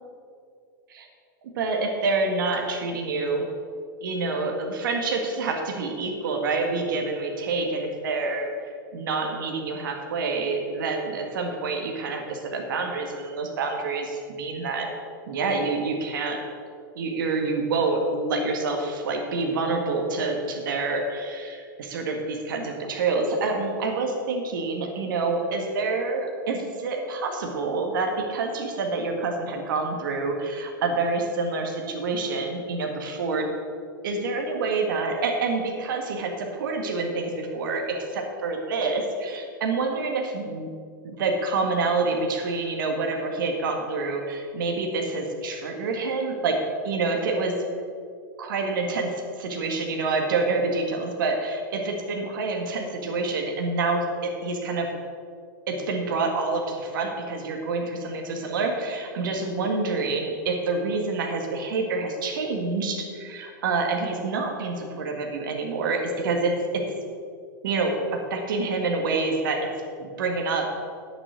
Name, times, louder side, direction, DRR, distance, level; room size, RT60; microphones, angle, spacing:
voice 1, 1.5-3.4 4.0-14.9 15.3-16.4 16.9-33.5 34.0-40.7 41.0-46.6 46.8-47.6 48.4-54.9 55.7-66.8 67.6-69.7 70.0-70.7, right 3 dB, 70° right, 3 dB, 1.7 m, -27 dB
9.7 x 7.1 x 6.3 m, 2.3 s
hypercardioid pair, 100°, 11 cm